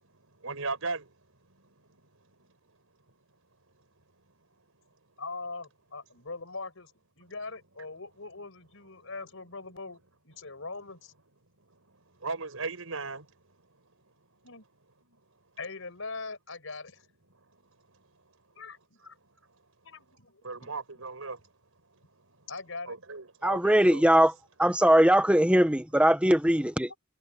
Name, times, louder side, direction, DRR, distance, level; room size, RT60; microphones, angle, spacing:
voice 1, 0.4-1.1 12.2-13.3 20.4-21.4 22.9-24.1, right 3 dB, 80° right, 5.0 m, -36 dB
voice 2, 5.2-6.9 7.2-11.1 14.4-14.6 15.6-17.0 18.6-18.8 19.0-19.1 19.8-20.7 22.5-23.0 26.9-27.0, left 3 dB, 70° left, 5.6 m, -41 dB
voice 3, 23.4-24.3 24.6-26.9, right 1 dB, 5° right, 1.4 m, -21 dB
head